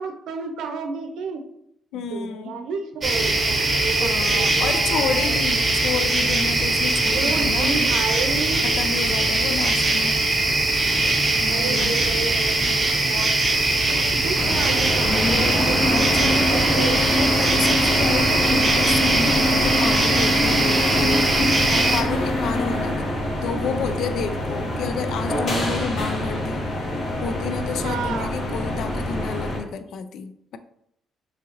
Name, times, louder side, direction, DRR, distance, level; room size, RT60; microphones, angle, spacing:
voice 1, 0.0-1.4 1.9-5.4 7.1-8.7 11.4-12.6 13.0-13.3 13.9-15.9 16.2-17.0 20.8-21.0 27.8-28.5, right 4 dB, 80° right, 6 dB, 0.5 m, -31 dB
voice 2, 1.9-2.5 4.0-7.7 8.6-10.3 11.4-12.0 15.8-16.6 17.2-21.3 21.7-23.0 23.4-26.7 27.2-30.6, left 6 dB, 75° left, 11 dB, 0.3 m, -30 dB
sound 1, 3.0-22.0, right 2 dB, 30° right, 0.7 m, -21 dB
sound 2, 14.3-29.6, left 1 dB, 50° left, 1.3 m, -24 dB
3.7 x 2.8 x 2.9 m, 0.74 s
cardioid pair, 90°, 0 cm